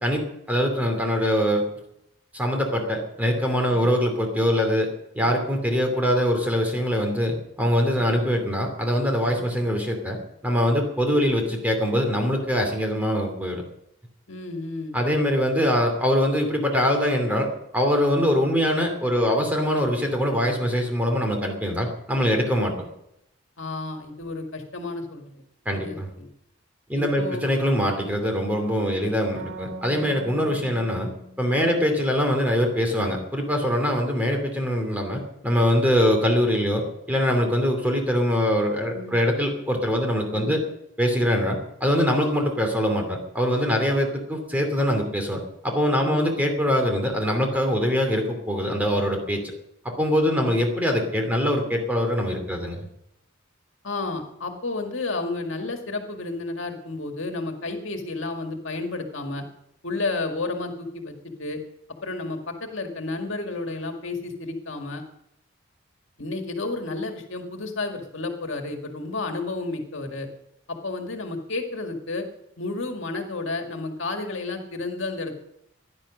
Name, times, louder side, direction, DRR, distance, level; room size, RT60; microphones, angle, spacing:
voice 1, 0.0-1.7 2.3-10.2 10.4-13.6 14.9-22.9 25.6-26.1 26.9-31.1 31.4-40.6 41.0-49.4 49.8-52.8, equal, 10° right, 3 dB, 2.6 m, -23 dB
voice 2, 14.3-15.0 23.6-25.4 25.7-26.3 26.9-27.4 31.6-31.8 38.9-39.2 40.3-40.5 46.0-46.3 50.2-50.5 53.8-59.4 59.8-61.6 62.0-65.0 66.2-70.3 70.7-72.3 72.6-75.3, left 3 dB, 70° left, 4 dB, 1.9 m, -31 dB
sound 1, 29.4-32.9, right 2 dB, 65° right, 2.7 m, -43 dB
16.5 x 11.0 x 6.3 m, 0.79 s
head